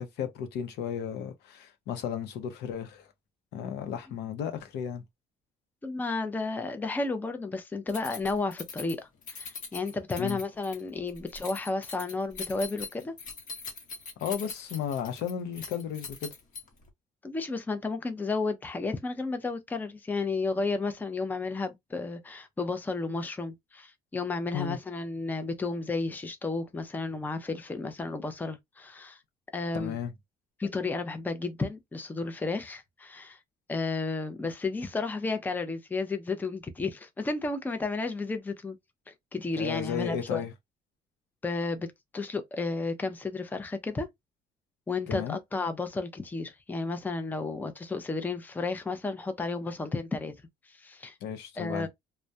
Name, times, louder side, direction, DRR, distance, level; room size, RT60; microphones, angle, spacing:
voice 1, 0.0-3.1 3.5-5.0 10.2-10.4 14.2-16.3 24.5-24.8 29.7-30.1 39.5-40.5 45.1-45.4 51.2-51.9, left 8 dB, 80° left, 0.6 m, -34 dB
voice 2, 5.8-13.2 17.2-29.2 29.5-30.0 30.6-33.4 33.7-38.8 39.1-40.5 41.4-41.9 42.1-44.1 44.9-50.4 50.7-51.1 51.6-51.9, left 3 dB, 10° left, 0.4 m, -32 dB
Keys jangling, 7.9-16.9, left 4 dB, 50° left, 0.9 m, -42 dB
2.2 x 2.1 x 2.6 m
cardioid pair, 110°, 17 cm